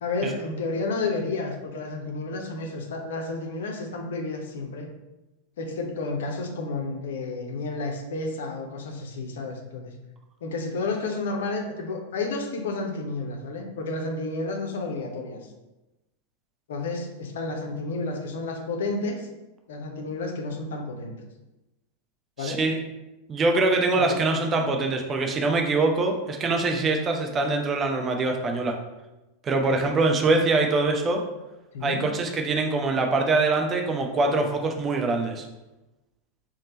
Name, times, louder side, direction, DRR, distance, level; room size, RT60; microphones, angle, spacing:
voice 1, 0.0-4.9 5.6-9.9 10.4-15.4 16.7-19.3 19.7-21.1 22.4-22.6 23.9-24.2 31.7-32.0, left 3 dB, 60° left, 2 dB, 0.6 m, -31 dB
voice 2, 22.4-22.8 23.3-28.7 29.4-31.2 31.8-35.5, right 3 dB, 25° right, 3 dB, 0.5 m, -24 dB
3.2 x 2.0 x 3.9 m, 1.0 s
figure-of-eight pair, 90°, 0 cm